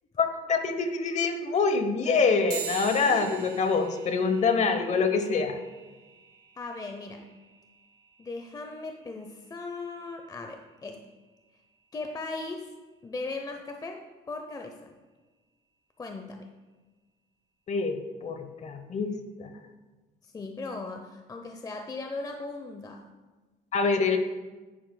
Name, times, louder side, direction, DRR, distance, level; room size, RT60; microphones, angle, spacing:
voice 1, 0.2-5.5 17.7-19.1 19.4-19.5 23.7-24.2, left 4 dB, 45° left, 8 dB, 1.0 m, -25 dB
sound 1, 2.5-12.3, right 8 dB, 75° right, 1.8 m, -45 dB
voice 2, 6.6-7.3 8.2-11.0 11.9-12.7 13.0-14.9 16.0-16.5 20.2-23.1, left 3 dB, 20° left, 5 dB, 0.6 m, -38 dB
10.0 x 9.4 x 2.2 m, 1.2 s
cardioid pair, 110°, 17 cm